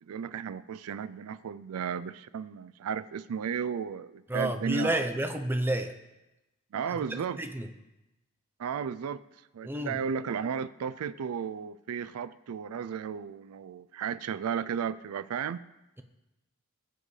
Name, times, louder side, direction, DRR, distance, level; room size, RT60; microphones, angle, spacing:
voice 1, 0.0-5.1 6.7-7.4 8.6-15.6, right 7 dB, 80° right, 0.4 m, -34 dB
voice 2, 4.3-5.9 7.1-7.7 9.6-10.0, right 1 dB, 10° right, 0.7 m, -30 dB
20.0 x 7.7 x 3.2 m
head